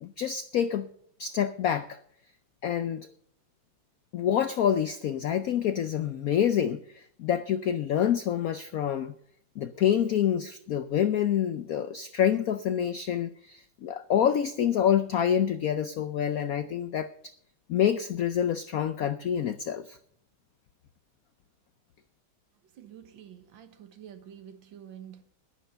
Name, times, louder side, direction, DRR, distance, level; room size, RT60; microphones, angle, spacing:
voice 1, 0.0-0.9 1.2-2.0 2.6-3.1 4.1-9.1 9.6-17.1 17.7-20.0, left 9 dB, 80° left, 0.7 m, -27 dB
voice 2, 22.7-25.2, right 9 dB, 70° right, 1.9 m, -48 dB
11.0 x 10.5 x 6.7 m
omnidirectional pair, 2.2 m